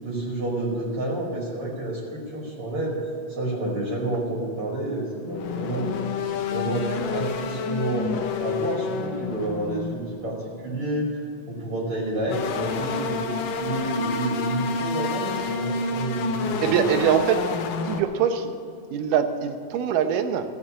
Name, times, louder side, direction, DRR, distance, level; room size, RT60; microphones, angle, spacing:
voice 1, 0.0-3.0 3.3-5.9 6.5-8.1 8.4-11.2 11.5-13.3 13.6-16.8, right 1 dB, 45° right, -3 dB, 2.9 m, -29 dB
sound 1, 5.2-10.3 12.1-18.0, left 4 dB, 90° left, 2.6 m, -29 dB
voice 2, 16.6-17.4 17.9-18.5 18.9-20.5, right 8 dB, 85° right, 7 dB, 2.5 m, -23 dB
15.5 x 7.7 x 8.5 m, 2.3 s
omnidirectional pair, 3.7 m